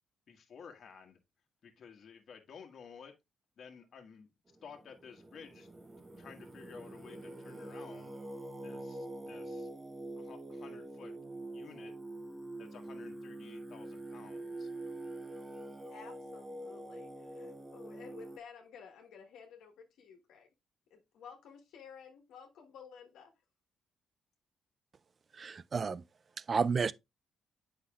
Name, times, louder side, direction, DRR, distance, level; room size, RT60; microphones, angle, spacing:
voice 1, 0.3-1.2 1.6-3.1 3.6-4.3 4.6-5.7 6.2-8.2 8.6-9.7 10.2-11.1 11.5-11.9 12.6-14.7, left 6 dB, 55° left, 1.4 m, -53 dB
Singing, 4.5-18.4, right 1 dB, 20° right, 0.8 m, -45 dB
voice 2, 15.9-20.5 20.9-23.3, left 6 dB, 80° left, 1.3 m, -53 dB
voice 3, 25.3-26.0 26.5-26.9, right 5 dB, 40° right, 0.4 m, -31 dB
8.3 x 5.7 x 2.3 m
cardioid pair, 90°, 0 cm